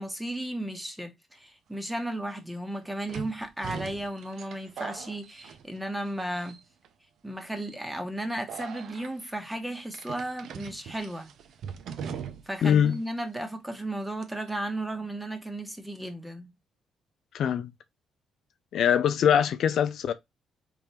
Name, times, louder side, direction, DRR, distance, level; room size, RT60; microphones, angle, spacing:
voice 1, 0.0-6.6 7.2-11.3 12.5-16.5, right 1 dB, 5° right, 1.2 m, -34 dB
sound 1, 1.7-1.8 3.1-6.1 6.4-6.9 7.5-7.7 8.5-9.1 9.9-12.7 12.9-13.0 14.2-14.5, right 7 dB, 70° right, 0.6 m, -41 dB
voice 2, 12.6-13.0 17.3-17.7 18.7-20.1, left 8 dB, 70° left, 0.4 m, -23 dB
3.5 x 3.4 x 4.3 m
cardioid pair, 90°, 0 cm